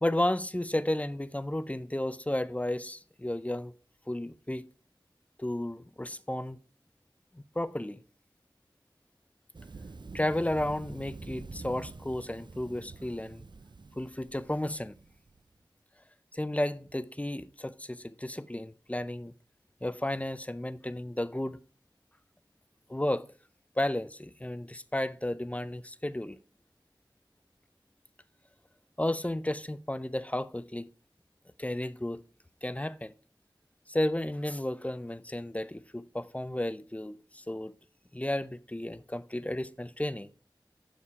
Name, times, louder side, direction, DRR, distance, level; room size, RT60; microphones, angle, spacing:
voice 1, 0.0-3.7 4.1-4.7 5.4-6.6 7.3-8.0 10.1-13.4 14.0-14.9 16.3-19.3 19.8-21.6 22.9-23.3 23.8-26.4 29.0-30.9 31.6-32.2 32.6-33.1 33.9-37.7 38.1-40.3, left 1 dB, 15° left, 0.5 m, -33 dB
Thunder, 9.5-15.4, right 3 dB, 65° right, 0.6 m, -46 dB
7.2 x 6.6 x 4.8 m
wide cardioid pair, 50°, 8 cm